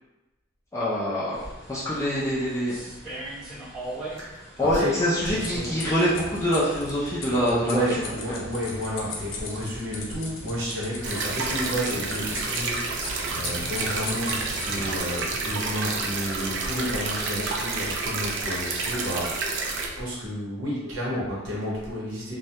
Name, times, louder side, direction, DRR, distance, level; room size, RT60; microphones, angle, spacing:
voice 1, 0.7-1.4 1.7-2.8 4.6-8.4, equal, 15° left, -8 dB, 0.3 m, -25 dB
sound 1, 1.3-17.9, right 1 dB, 5° right, 0.8 m, -44 dB
voice 2, 4.6-5.8 7.2-22.4, equal, 75° right, -6 dB, 0.8 m, -31 dB
sound 2, 5.1-15.0, left 2 dB, 80° left, 0.5 m, -38 dB
sound 3, 11.0-19.9, right 3 dB, 60° right, 0.3 m, -29 dB
2.2 x 2.1 x 2.7 m, 1.0 s
head